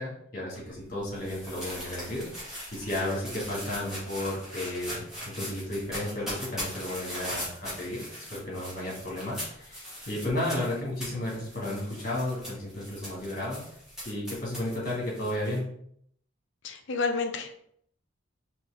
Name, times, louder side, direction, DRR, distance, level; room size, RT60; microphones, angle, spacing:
voice 1, 0.0-5.0 5.3-13.6 14.1-15.7, left 1 dB, 40° left, -4 dB, 1.8 m, -33 dB
sound 1, 0.5-15.6, equal, 5° right, 1.6 m, -40 dB
voice 2, 16.6-17.6, left 4 dB, 60° left, 6 dB, 0.5 m, -30 dB
4.4 x 3.2 x 3.4 m, 0.67 s
head